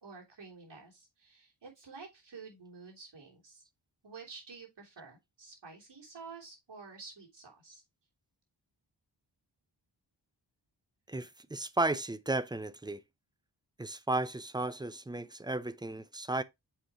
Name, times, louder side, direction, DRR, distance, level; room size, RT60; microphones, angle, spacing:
voice 1, 0.0-3.6 4.0-7.8, right 4 dB, 65° right, 3.2 m, -50 dB
voice 2, 11.1-13.0 13.8-16.4, right 2 dB, 10° right, 0.5 m, -34 dB
7.5 x 4.8 x 2.9 m
wide cardioid pair, 85°, 44 cm